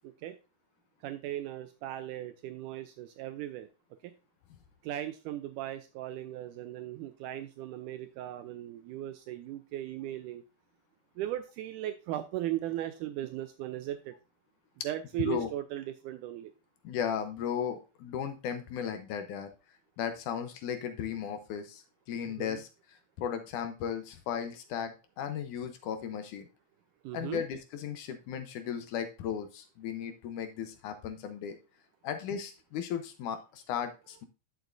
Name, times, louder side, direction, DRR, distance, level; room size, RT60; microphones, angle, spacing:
voice 1, 0.0-0.4 1.0-3.7 4.0-4.1 4.8-10.4 11.2-14.2 14.8-16.5 22.4-22.6 27.0-27.4, right 13 dB, 80° right, 10 dB, 2.0 m, -37 dB
voice 2, 15.2-15.5 16.8-19.5 20.0-26.5 27.1-31.6 32.0-34.3, left 8 dB, 75° left, 8 dB, 2.1 m, -36 dB
10.5 x 6.6 x 2.6 m, 0.31 s
omnidirectional pair, 3.8 m